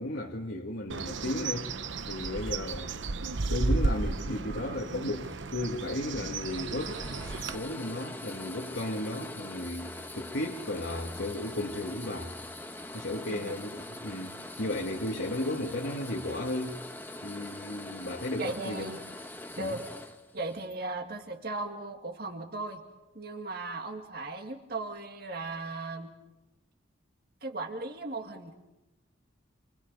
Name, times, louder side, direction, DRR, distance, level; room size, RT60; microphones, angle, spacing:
voice 1, 0.0-1.7 2.1-3.1 3.5-7.0 7.5-12.4 12.9-16.8 17.2-18.9 19.6-19.8, left 1 dB, 70° left, 1.8 m, -34 dB
Bird, 0.9-7.5, right 3 dB, 70° right, 0.9 m, -33 dB
sound 1, 5.2-20.8, left 1 dB, 10° left, 1.1 m, -43 dB
voice 2, 18.4-19.0 19.6-19.8 20.3-22.8 23.2-26.1 27.4-28.5, right 2 dB, 50° right, 2.0 m, -37 dB
29.0 x 25.0 x 5.4 m
head